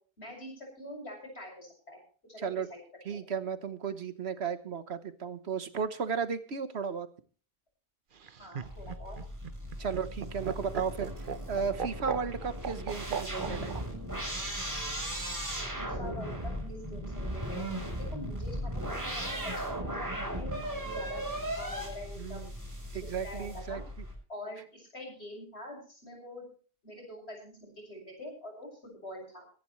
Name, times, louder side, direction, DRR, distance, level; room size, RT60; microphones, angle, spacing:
voice 1, 0.2-2.0 2.3-2.8 3.1-3.2 8.4-9.2 15.6-17.7 18.0-22.4 22.9-23.8 24.3-26.5 26.8-29.4, left 1 dB, 80° left, 1 dB, 7.7 m, -45 dB
voice 2, 3.0-7.1 9.8-11.1 11.5-13.7 22.2-22.5 22.9-23.8, right 6 dB, 75° right, 11 dB, 1.4 m, -34 dB
Laughter, 8.1-13.8 15.1-15.8, right 7 dB, 55° right, 1.0 m, -37 dB
sound 1, 8.6-24.1, equal, 15° right, 6.4 m, -37 dB
23.0 x 11.0 x 3.2 m, 0.41 s
omnidirectional pair, 1.1 m